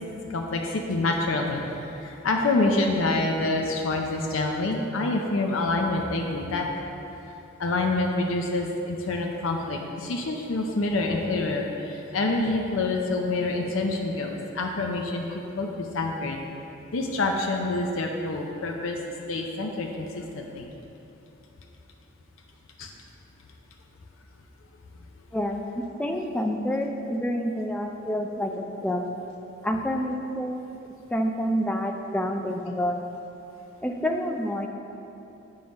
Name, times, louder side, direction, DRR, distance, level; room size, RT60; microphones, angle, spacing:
voice 1, 0.3-1.6 2.0-6.6 7.6-16.4 16.9-19.0 19.3-20.7 22.8-22.9, left 2 dB, 85° left, 2 dB, 0.5 m, -27 dB
voice 2, 26.0-29.1 29.6-30.7 31.1-33.2 33.8-34.7, equal, 5° left, 3 dB, 0.4 m, -28 dB
7.2 x 3.8 x 5.1 m, 2.9 s
head